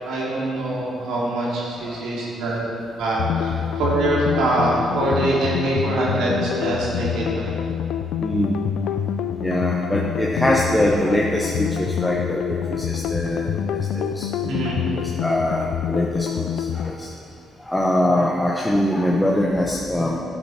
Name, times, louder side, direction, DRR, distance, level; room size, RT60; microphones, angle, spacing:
voice 1, 0.0-2.6 3.0-7.5 14.4-14.8, right 2 dB, 85° right, -5 dB, 3.1 m, -24 dB
sound 1, 3.2-16.9, left 9 dB, 80° left, 0.4 m, -26 dB
voice 2, 8.2-8.6 9.4-14.3 14.7-17.1 17.6-20.2, left 1 dB, 10° left, -2 dB, 1.0 m, -23 dB
11.5 x 7.8 x 5.8 m, 2.5 s
cardioid pair, 90°, 0 cm